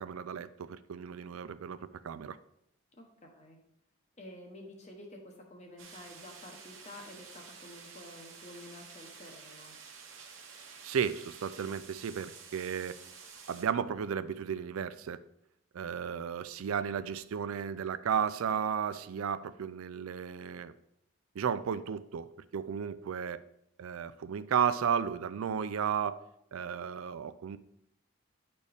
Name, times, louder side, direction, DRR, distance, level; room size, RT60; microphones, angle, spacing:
voice 1, 0.0-2.4 10.8-13.0 13.5-15.2 15.7-20.7 21.4-23.4 23.8-26.2 26.5-27.6, right 7 dB, 85° right, 14 dB, 0.4 m, -34 dB
voice 2, 3.0-3.6 4.2-9.8, left 1 dB, 35° left, 2 dB, 1.1 m, -50 dB
sound 1, 5.8-13.6, right 5 dB, 70° right, 1.1 m, -51 dB
9.6 x 4.3 x 3.5 m, 0.77 s
head